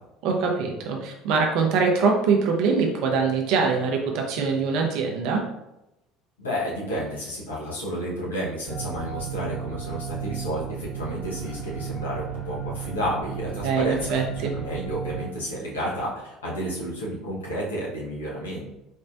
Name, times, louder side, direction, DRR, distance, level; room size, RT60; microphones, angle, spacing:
voice 1, 0.2-5.4 13.6-14.5, right 5 dB, 60° right, 2 dB, 0.8 m, -23 dB
voice 2, 6.4-18.7, equal, 80° left, -5 dB, 1.3 m, -31 dB
sound 1, 8.7-15.3, right 7 dB, 5° right, 1.3 m, -34 dB
4.4 x 3.2 x 2.7 m, 0.88 s
figure-of-eight pair, 60°, 0 cm